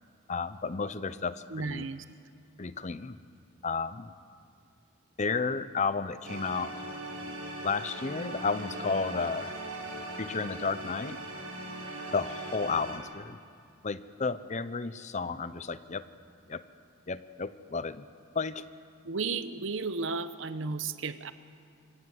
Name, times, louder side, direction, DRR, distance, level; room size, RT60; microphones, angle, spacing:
voice 1, 0.3-1.9 2.6-3.2 3.6-4.1 5.2-6.9 7.6-9.6 10.2-11.2 12.1-13.4 13.8-16.0 16.5-16.6 17.1-18.0 18.3-18.6, left 4 dB, 35° left, 14 dB, 0.6 m, -32 dB
voice 2, 1.5-2.0 19.0-21.3, right 4 dB, 60° right, 12 dB, 0.9 m, -33 dB
sound 1, 6.2-13.0, right 1 dB, 80° right, 7.7 m, -40 dB
26.0 x 18.0 x 8.0 m, 2.6 s
head